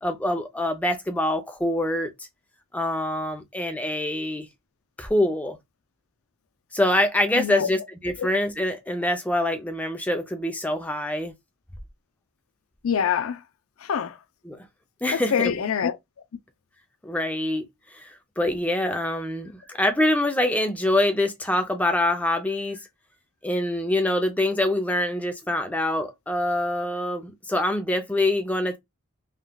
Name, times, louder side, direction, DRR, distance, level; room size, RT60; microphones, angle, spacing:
voice 1, 0.0-2.1 2.7-4.5 5.0-5.6 6.7-11.3 14.5-14.6 15.0-15.6 17.0-17.7 17.9-22.8 23.4-28.8, left 1 dB, 5° left, 0.4 m, -25 dB
voice 2, 7.3-7.7 8.2-8.3 12.8-13.4 13.8-14.2 15.1-16.0, left 7 dB, 75° left, 0.4 m, -25 dB
3.5 x 2.3 x 2.2 m
head